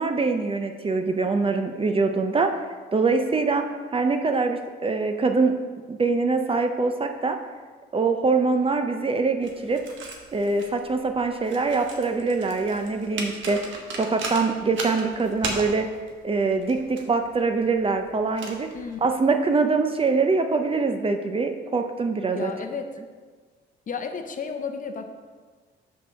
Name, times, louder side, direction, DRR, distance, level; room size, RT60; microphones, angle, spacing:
voice 1, 0.0-2.5 2.9-3.6 3.9-5.5 5.9-7.4 7.9-9.8 10.3-13.7 14.0-15.9 16.2-18.7 19.0-22.5, right 4 dB, 30° right, 6 dB, 0.6 m, -23 dB
sound 1, 9.4-19.2, right 3 dB, 75° right, 1.2 m, -38 dB
voice 2, 22.3-22.9 23.9-25.1, left 6 dB, 40° left, 6 dB, 0.7 m, -32 dB
5.3 x 4.6 x 6.3 m, 1.5 s
cardioid pair, 90°, 20 cm